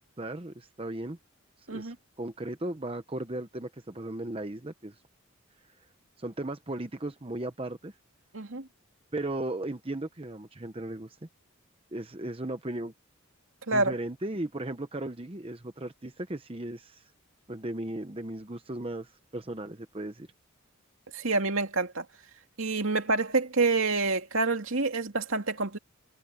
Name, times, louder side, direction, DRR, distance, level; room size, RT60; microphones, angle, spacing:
voice 1, 0.2-1.2 1.7-5.0 6.2-7.9 9.1-11.2 11.9-12.9 13.7-17.1 17.5-20.3, right 1 dB, 25° right, 0.9 m, -36 dB
voice 2, 8.3-8.7 13.7-14.0 21.1-22.0 22.6-25.8, right 3 dB, 70° right, 2.5 m, -27 dB
head